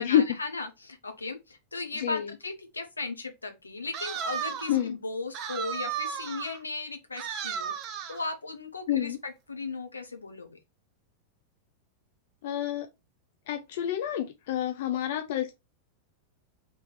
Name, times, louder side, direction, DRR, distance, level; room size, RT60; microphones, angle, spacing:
voice 1, 0.0-7.7 8.1-10.6, left 3 dB, 80° left, 0.9 m, -36 dB
voice 2, 2.0-2.3 4.7-5.0 8.9-9.2 12.4-12.9 13.5-15.5, left 10 dB, 55° left, 0.5 m, -28 dB
sound 1, 3.9-4.8 5.3-6.6 7.2-8.3, right 8 dB, 35° right, 0.7 m, -34 dB
3.4 x 3.3 x 4.5 m
figure-of-eight pair, 90°, 0 cm